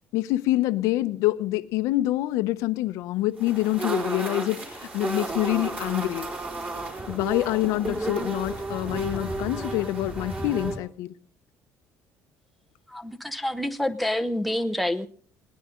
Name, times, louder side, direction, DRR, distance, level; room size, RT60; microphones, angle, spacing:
voice 1, 0.1-6.3 7.1-11.1, left 16 dB, 85° left, 0.9 m, -26 dB
sound 1, 3.4-10.8, right 2 dB, 25° right, 4.7 m, -32 dB
voice 2, 12.9-15.1, left 1 dB, ahead, 0.8 m, -27 dB
20.5 x 18.5 x 3.8 m
cardioid pair, 170°, 5 cm